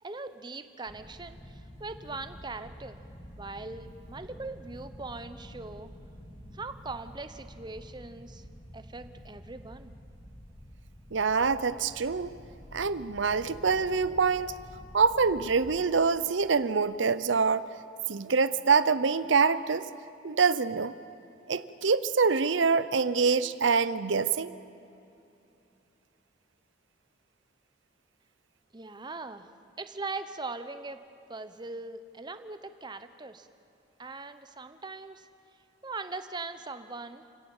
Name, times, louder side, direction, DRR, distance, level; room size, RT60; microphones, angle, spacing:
voice 1, 0.0-3.0 3.4-5.9 6.5-8.4 8.7-10.0 28.7-29.5 29.8-31.0 31.3-33.5 34.0-35.3 35.8-37.2, right 3 dB, 25° right, 10 dB, 1.0 m, -40 dB
sound 1, 0.9-15.9, equal, 30° left, 2.2 m, -49 dB
voice 2, 11.1-12.3 12.7-14.5 14.9-17.7 18.1-19.9 20.2-20.9 21.5-24.5, right 5 dB, 85° right, 15 dB, 0.8 m, -25 dB
29.0 x 17.0 x 7.2 m, 2.7 s
head